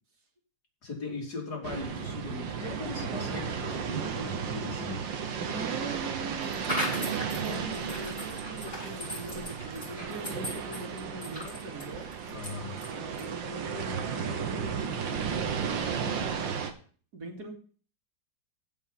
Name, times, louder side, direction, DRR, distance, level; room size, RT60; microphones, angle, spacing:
voice 1, 0.8-5.0 12.3-12.8, left 4 dB, 55° left, -2 dB, 4.2 m, -38 dB
sound 1, 1.6-16.7, right 6 dB, 85° right, 1.9 m, -34 dB
voice 2, 5.4-12.1 12.8-16.1 17.1-17.5, right 2 dB, 60° right, 2 dB, 2.7 m, -41 dB
sound 2, 6.4-13.4, equal, 25° left, 7.2 m, -39 dB
sound 3, 6.7-10.0, right 6 dB, 40° right, 1.3 m, -43 dB
15.5 x 5.5 x 5.5 m, 0.43 s
omnidirectional pair, 2.0 m